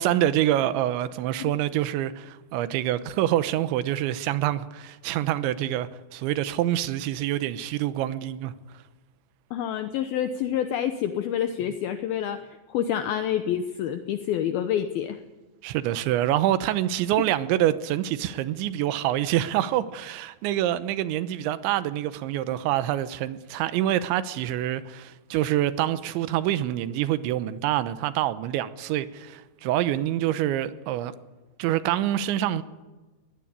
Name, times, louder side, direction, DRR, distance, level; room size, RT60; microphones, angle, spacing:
voice 1, 0.0-8.5 15.6-31.1 31.6-32.6, right 13 dB, 80° right, 3.2 m, -26 dB
voice 2, 9.5-15.2, left 10 dB, 80° left, 2.1 m, -28 dB
22.5 x 18.5 x 8.7 m
omnidirectional pair, 5.5 m